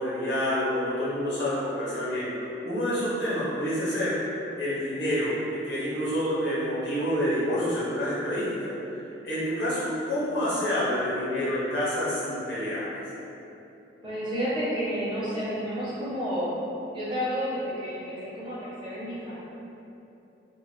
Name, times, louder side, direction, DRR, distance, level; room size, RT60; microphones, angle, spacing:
voice 1, 0.0-4.1 4.6-8.7 9.2-12.9, equal, 70° left, -10 dB, 1.1 m, -28 dB
voice 2, 14.0-16.5 16.9-19.4, equal, 25° right, -11 dB, 0.7 m, -31 dB
2.8 x 2.5 x 3.2 m, 2.9 s
head